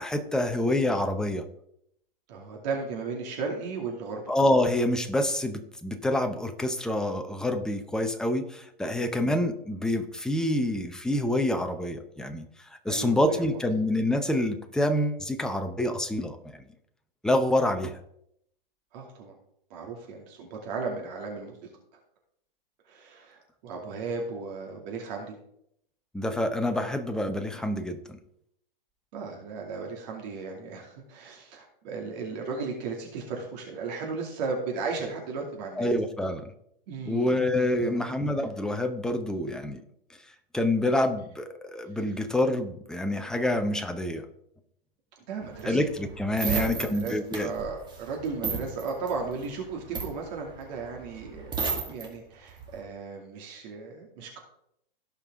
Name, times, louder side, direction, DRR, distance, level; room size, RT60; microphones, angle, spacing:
voice 1, 0.0-1.4 4.3-12.5 12.8-16.5 17.2-18.0 26.1-28.2 35.8-36.5 37.1-39.8 40.5-44.2 45.6-47.5, left 1 dB, ahead, 7 dB, 0.7 m, -27 dB
voice 2, 2.3-4.2 8.9-9.1 12.9-13.6 18.9-19.4 19.7-21.6 22.9-25.4 29.1-35.9 36.9-37.3 37.8-38.1 45.3-45.8 46.4-51.5 51.9-54.4, right 4 dB, 45° right, 0 dB, 2.5 m, -35 dB
sound 1, 45.4-52.1 52.5-52.8, right 4 dB, 15° right, 2.2 m, -34 dB
16.5 x 5.5 x 3.7 m, 0.74 s
hypercardioid pair, 120°, 29 cm